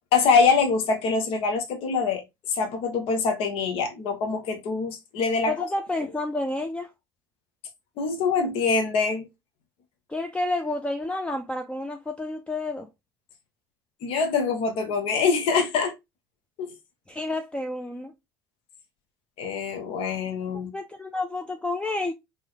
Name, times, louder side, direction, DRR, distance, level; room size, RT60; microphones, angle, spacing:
voice 1, 0.1-2.2 2.5-5.5 8.0-9.2 14.0-15.9 16.6-16.7 19.4-20.7, left 5 dB, 55° left, 1.1 m, -24 dB
voice 2, 5.5-6.9 10.1-12.9 17.1-18.1 20.6-22.1, left 2 dB, 10° left, 0.5 m, -30 dB
3.7 x 3.1 x 3.2 m
hypercardioid pair, 65°, 11 cm